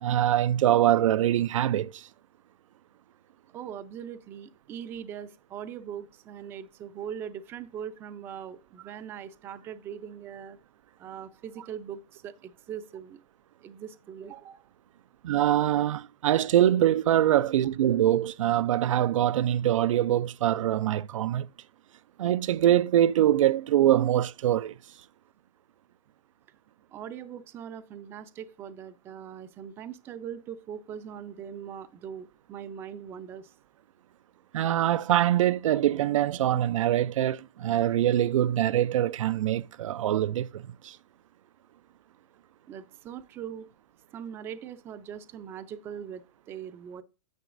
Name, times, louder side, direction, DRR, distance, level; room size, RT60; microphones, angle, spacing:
voice 1, 0.0-2.1 15.2-21.5 22.2-24.7 34.5-41.0, right 12 dB, 85° right, 0.4 m, -24 dB
voice 2, 3.5-10.6 11.0-13.2 13.6-14.7 26.9-33.5 42.7-43.7 44.1-47.0, right 8 dB, 15° right, 0.3 m, -41 dB
9.2 x 8.5 x 2.5 m
hypercardioid pair, 160°, 16 cm